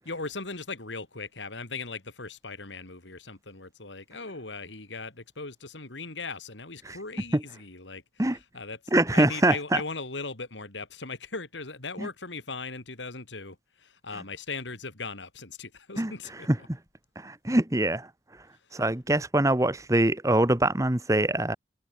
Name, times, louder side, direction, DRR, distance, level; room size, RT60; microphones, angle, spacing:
voice 1, 0.1-16.5, left 4 dB, 85° left, 3.4 m, -39 dB
voice 2, 8.9-9.8 12.0-12.1 16.0-16.1 17.2-18.1 18.7-21.6, right 1 dB, 20° right, 1.2 m, -24 dB
head